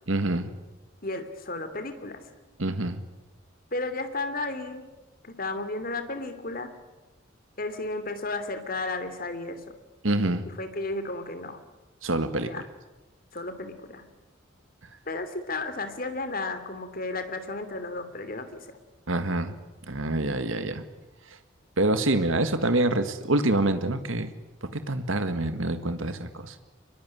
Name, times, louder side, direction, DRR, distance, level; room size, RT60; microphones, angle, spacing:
voice 1, 0.1-0.5 2.6-3.0 10.0-10.5 12.0-12.5 19.1-19.5 19.9-20.8 21.8-24.3 24.7-26.6, right 2 dB, 80° right, 9 dB, 1.8 m, -26 dB
voice 2, 1.0-2.2 3.7-4.8 5.2-6.7 7.6-9.6 10.4-11.6 12.4-12.6 13.3-14.0 15.1-18.5, left 2 dB, 45° left, 10 dB, 3.0 m, -33 dB
24.0 x 22.0 x 9.9 m, 1.0 s
head